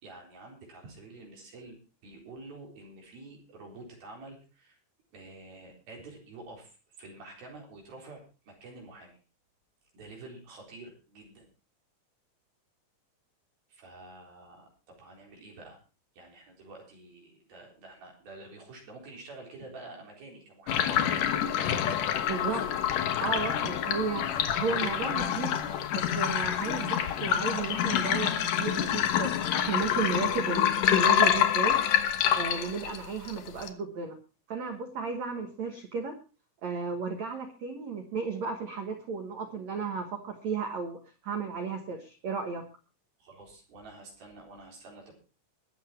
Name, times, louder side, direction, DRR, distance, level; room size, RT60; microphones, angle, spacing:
voice 1, 0.0-4.8 5.1-9.2 9.9-11.5 13.7-15.8 16.2-20.9 22.5-22.7 43.2-45.2, right 2 dB, 50° right, 0 dB, 5.5 m, -48 dB
sound 1, 20.7-33.7, left 10 dB, 80° left, 1.8 m, -27 dB
voice 2, 22.2-22.6 23.2-31.8 32.3-34.2 34.5-36.1 36.6-42.6, right 5 dB, 85° right, 5 dB, 1.5 m, -34 dB
22.0 x 7.3 x 4.4 m, 0.34 s
omnidirectional pair, 5.5 m